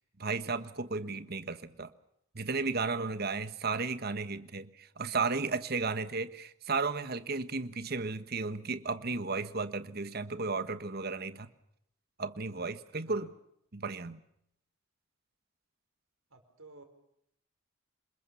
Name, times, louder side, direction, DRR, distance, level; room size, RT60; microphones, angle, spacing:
voice 1, 0.2-1.9 2.3-11.5 12.2-13.3 13.7-14.2, right 4 dB, 45° right, 12 dB, 1.3 m, -34 dB
voice 2, 16.3-16.8, right 2 dB, 80° right, 6 dB, 5.0 m, -53 dB
27.5 x 21.0 x 7.1 m, 0.75 s
head